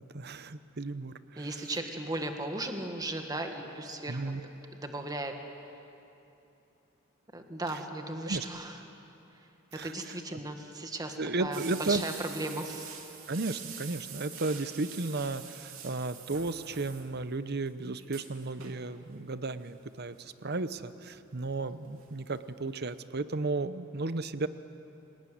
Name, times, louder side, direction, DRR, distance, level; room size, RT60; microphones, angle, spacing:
voice 1, 0.0-1.5 4.1-4.4 7.7-7.8 8.2-8.4 9.7-10.4 11.2-12.0 13.3-24.5, right 3 dB, 50° right, 13 dB, 0.9 m, -34 dB
voice 2, 1.4-4.3 4.8-5.3 7.3-8.8 9.8-13.0, right 2 dB, 20° right, 4 dB, 1.8 m, -36 dB
sound 1, 11.5-17.4 17.7-17.8 18.0-18.9 19.9-20.2 20.8-22.1 22.3-22.4 22.8-22.9, right 7 dB, 80° right, 2.8 m, -46 dB
28.0 x 19.0 x 9.5 m, 2.8 s
head